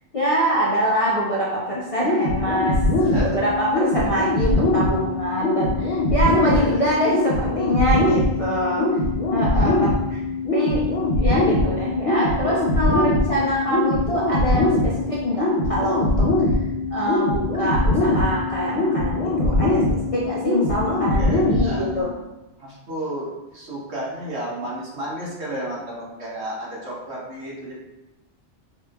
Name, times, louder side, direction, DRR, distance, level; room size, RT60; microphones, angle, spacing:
voice 1, 0.1-2.8 3.2-8.9 9.3-10.2 10.5-10.8 11.2-16.3 16.9-22.1, equal, 40° left, -6 dB, 0.5 m, -24 dB
sound 1, 2.0-22.0, left 2 dB, 70° left, 1.1 m, -22 dB
voice 2, 3.0-3.4 6.4-6.9 8.4-9.1 10.1-10.5 10.9-11.2 13.3-13.5 21.2-21.9 22.6-27.7, right 1 dB, 65° right, -6 dB, 1.4 m, -33 dB
4.9 x 2.8 x 2.2 m, 1.0 s
omnidirectional pair, 1.2 m